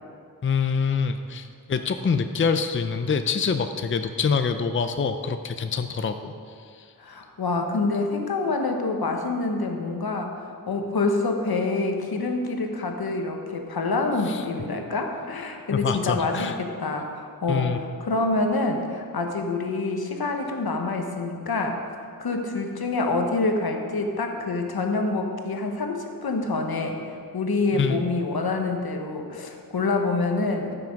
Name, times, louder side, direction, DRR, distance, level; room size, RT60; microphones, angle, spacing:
voice 1, 0.4-6.3 6.7-6.9 14.3-14.4 15.7-16.6 17.5-17.8 27.7-28.0, left 5 dB, 35° left, 8 dB, 0.5 m, -25 dB
voice 2, 7.0-10.3 10.7-21.8 22.2-30.7, left 3 dB, 85° left, 3 dB, 1.1 m, -26 dB
14.0 x 6.0 x 5.2 m, 2.2 s
wide cardioid pair, 90°, 36 cm